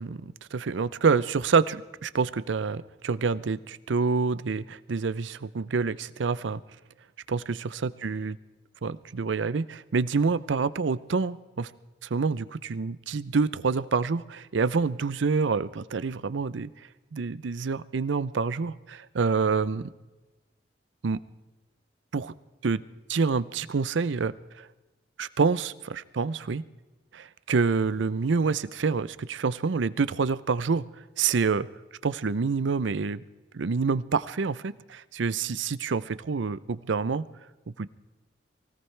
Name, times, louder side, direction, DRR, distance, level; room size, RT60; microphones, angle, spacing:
voice 1, 0.0-6.6 7.3-8.4 8.8-11.7 12.1-16.7 17.1-19.9 21.0-21.2 22.1-22.3 22.6-22.8 23.1-24.7 25.2-26.6 27.1-30.8 31.2-31.7 32.0-33.2 33.5-37.2 37.8-37.9, right 4 dB, 85° right, 17 dB, 0.5 m, -27 dB
24.0 x 17.0 x 3.3 m, 1.1 s
head